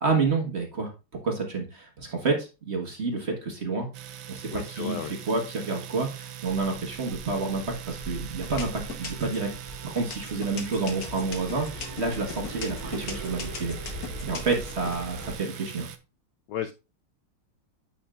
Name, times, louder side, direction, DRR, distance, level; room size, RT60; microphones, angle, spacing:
voice 1, 0.0-0.9 1.2-3.9 4.3-9.5 9.8-15.9, right 4 dB, 35° right, 2 dB, 1.3 m, -29 dB
Domestic sounds home sounds, 3.9-16.0, right 11 dB, 70° right, 1.5 m, -42 dB
voice 2, 4.5-5.1 16.5-16.7, left 10 dB, 75° left, 9 dB, 1.0 m, -33 dB
sound 1, 6.5-15.4, right 1 dB, 10° right, 1.7 m, -41 dB
sound 2, 7.5-8.0 8.4-9.5 10.0-15.0, left 5 dB, 50° left, 1.5 m, -38 dB
9.5 x 5.7 x 2.4 m, 0.29 s
omnidirectional pair, 2.3 m